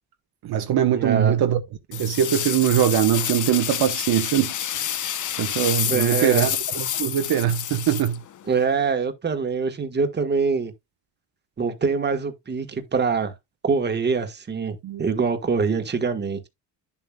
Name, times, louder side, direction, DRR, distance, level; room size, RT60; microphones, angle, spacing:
voice 1, 0.4-1.6 1.9-8.2 14.8-15.0, right 10 dB, 55° right, 1.0 m, -22 dB
voice 2, 0.9-1.4 5.9-6.5 8.5-10.7 11.6-13.3 13.6-16.5, right 5 dB, 25° right, 1.3 m, -24 dB
sound 1, 1.9-8.6, left 10 dB, 45° left, 0.8 m, -28 dB
10.5 x 7.1 x 2.3 m
cardioid pair, 130°, 44 cm